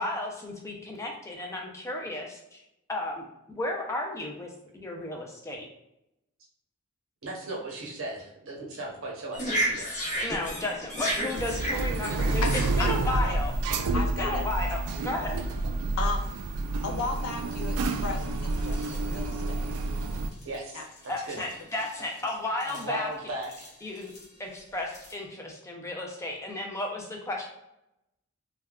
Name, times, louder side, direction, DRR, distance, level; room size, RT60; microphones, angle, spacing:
voice 1, 0.0-2.6 2.9-5.7 10.2-12.5 12.8-13.5 13.9-15.4 21.1-23.1 23.8-24.1 24.4-27.5, left 2 dB, 15° left, 0 dB, 0.4 m, -34 dB
voice 2, 7.2-9.8 20.4-20.8 21.3-21.4 22.6-23.7, right 2 dB, 60° right, -2 dB, 0.8 m, -37 dB
sound 1, 9.3-13.8 14.5-14.6 15.0-15.4 16.1-16.2 17.2-17.3 17.6-20.6 20.8-22.3 22.6-22.9 23.4-24.3 24.9-25.1, equal, 35° left, 0.8 m, -33 dB
sound 2, 11.3-20.3, right 2 dB, 90° right, 0.3 m, -29 dB
voice 3, 12.8-13.4 13.9-14.5 16.0-16.4 16.8-19.7 20.7-20.9 21.4-21.5 22.0-22.1, left 3 dB, 80° left, 4 dB, 0.5 m, -34 dB
3.3 x 2.2 x 2.3 m, 0.85 s
head